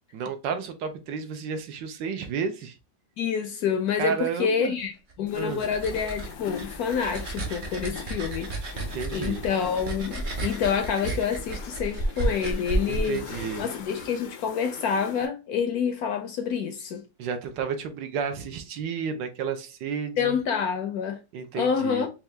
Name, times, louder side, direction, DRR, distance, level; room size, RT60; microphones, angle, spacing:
voice 1, 0.1-2.7 4.0-4.7 5.4-5.6 8.8-9.4 12.9-13.7 17.2-20.4 21.3-22.1, right 6 dB, 80° right, 1.4 m, -32 dB
voice 2, 3.2-8.5 9.1-13.2 13.6-17.0 20.2-21.2 21.5-22.1, left 7 dB, 70° left, 0.9 m, -27 dB
sound 1, 5.1-14.1, right 2 dB, 50° right, 0.6 m, -32 dB
sound 2, 5.3-15.3, left 7 dB, 90° left, 1.4 m, -42 dB
4.4 x 2.4 x 3.2 m
omnidirectional pair, 1.9 m